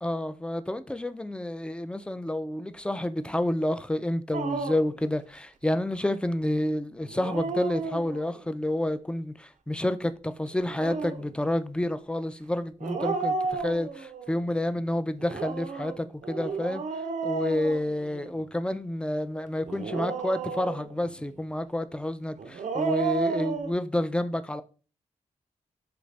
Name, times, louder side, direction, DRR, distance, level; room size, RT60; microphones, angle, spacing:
voice 1, 0.0-16.8 17.2-24.6, left 1 dB, 10° left, 0.3 m, -29 dB
Dog, 4.3-5.0 7.0-8.4 10.5-11.3 12.8-14.3 15.2-18.4 19.7-21.1 22.4-23.7, right 4 dB, 70° right, 0.4 m, -32 dB
3.3 x 2.5 x 3.2 m
cardioid pair, 50°, 13 cm